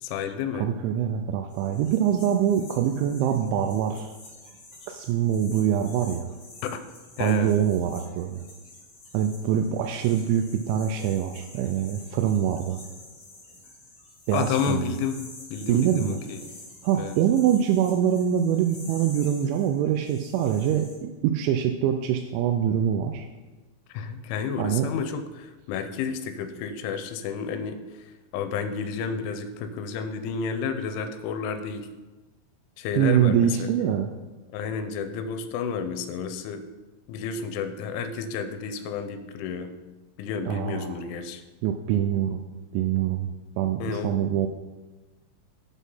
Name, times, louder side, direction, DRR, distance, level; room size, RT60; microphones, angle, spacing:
voice 1, 0.0-0.7 6.6-6.8 7.2-7.6 14.3-15.2 15.5-16.4 17.0-17.2 23.9-27.8 28.3-31.9 32.8-33.7 34.5-36.6 37.1-39.7 40.2-41.4 43.8-44.2, left 6 dB, 85° left, 9 dB, 3.1 m, -31 dB
voice 2, 0.5-4.1 4.9-6.3 7.2-8.4 9.1-12.8 14.3-14.9 15.7-16.2 16.8-23.3 24.6-24.9 33.0-34.1 40.4-41.0 41.6-42.5 42.7-43.3 43.6-44.5, right 9 dB, 85° right, 5 dB, 2.8 m, -24 dB
sound 1, 1.5-21.0, left 2 dB, 35° left, 3.1 m, -48 dB
8.1 x 6.2 x 5.4 m, 1.2 s
omnidirectional pair, 5.6 m